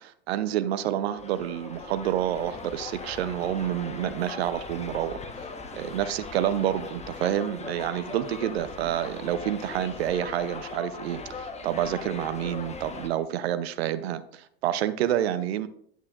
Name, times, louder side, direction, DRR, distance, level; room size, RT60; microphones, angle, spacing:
voice 1, 0.0-5.2 5.7-15.7, right 11 dB, 75° right, 0.8 m, -28 dB
sound 1, 1.2-13.1, left 4 dB, 20° left, 1.2 m, -39 dB
10.0 x 8.1 x 2.5 m
hypercardioid pair, 85°, 31 cm